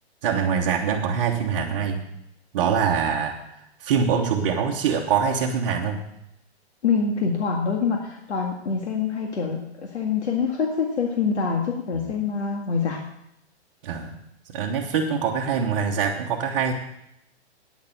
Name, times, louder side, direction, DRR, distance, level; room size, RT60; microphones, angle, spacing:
voice 1, 0.2-2.0 2.5-6.0 12.1-12.2 13.8-14.1 14.5-16.7, right 6 dB, 30° right, -3 dB, 1.0 m, -24 dB
voice 2, 6.8-13.0, left 5 dB, 85° left, 1 dB, 1.9 m, -25 dB
9.3 x 6.6 x 8.9 m, 0.81 s
hypercardioid pair, 165°, 33 cm